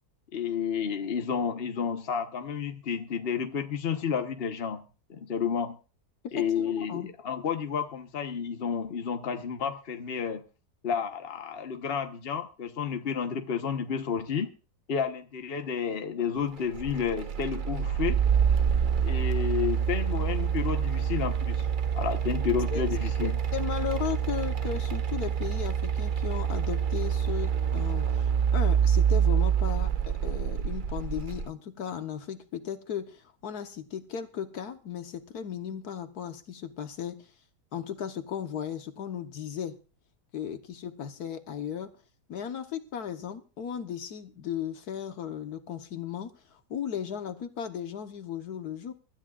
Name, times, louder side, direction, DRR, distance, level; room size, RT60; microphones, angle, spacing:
voice 1, 0.3-4.8 5.1-5.8 6.3-10.4 10.8-14.5 14.9-18.2 19.0-21.6 21.9-23.4, left 7 dB, 40° left, 1.3 m, -31 dB
voice 2, 6.3-7.1 22.7-22.8 23.5-37.3 37.7-39.8 40.3-41.9 42.3-48.9, left 8 dB, 75° left, 1.6 m, -36 dB
sound 1, 16.7-31.5, right 8 dB, 50° right, 0.6 m, -27 dB
24.0 x 12.5 x 2.4 m
omnidirectional pair, 1.7 m